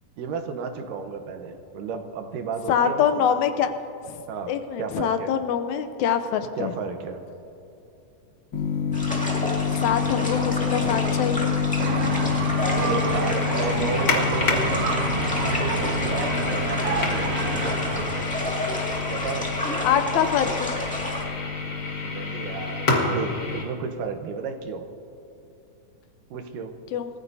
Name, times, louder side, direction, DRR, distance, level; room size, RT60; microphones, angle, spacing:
voice 1, 0.2-3.4 4.3-5.3 6.6-7.2 12.8-14.5 19.1-19.5 22.0-24.9 26.3-26.7, right 5 dB, 80° right, 6 dB, 2.6 m, -33 dB
voice 2, 2.7-3.7 4.1-4.2 4.5-6.7 9.7-11.5 19.8-20.7 26.9-27.1, left 8 dB, 75° left, 8 dB, 1.9 m, -24 dB
sound 1, 8.5-23.6, left 4 dB, 40° left, 1.8 m, -27 dB
sound 2, 8.9-21.2, left 1 dB, 5° left, 1.3 m, -31 dB
sound 3, 11.8-18.2, right 4 dB, 60° right, 1.8 m, -29 dB
27.5 x 15.0 x 2.7 m, 2.8 s
omnidirectional pair, 3.7 m